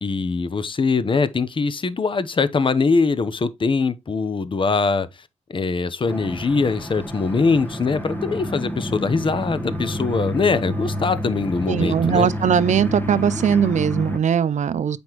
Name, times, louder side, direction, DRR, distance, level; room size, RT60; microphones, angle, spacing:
voice 1, 0.0-5.1 5.5-12.3, left 4 dB, 40° left, 0.8 m, -22 dB
sound 1, 6.1-14.2, equal, 15° left, 1.2 m, -29 dB
voice 2, 11.7-15.0, right 8 dB, 70° right, 0.6 m, -20 dB
7.9 x 5.2 x 3.0 m
cardioid pair, 90°, 13 cm